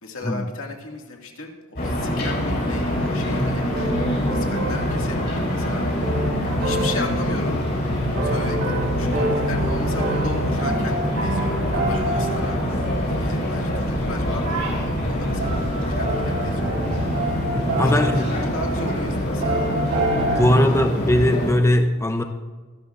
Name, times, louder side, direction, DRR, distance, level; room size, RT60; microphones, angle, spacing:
voice 1, 0.0-6.2 6.6-7.6 8.2-12.7 13.1-16.8 17.3-17.4 17.7-19.7 20.5-21.0, left 3 dB, 80° left, 1 dB, 2.1 m, -36 dB
sound 1, 1.8-21.5, equal, 50° left, 4.9 m, -25 dB
sound 2, 3.7-7.7 8.1-13.0 14.3-14.8 15.4-20.5, right 1 dB, 75° right, 3.9 m, -28 dB
voice 2, 17.8-18.3 20.3-22.2, left 1 dB, 15° left, 5 dB, 0.6 m, -19 dB
24.0 x 12.0 x 2.5 m, 1.4 s
head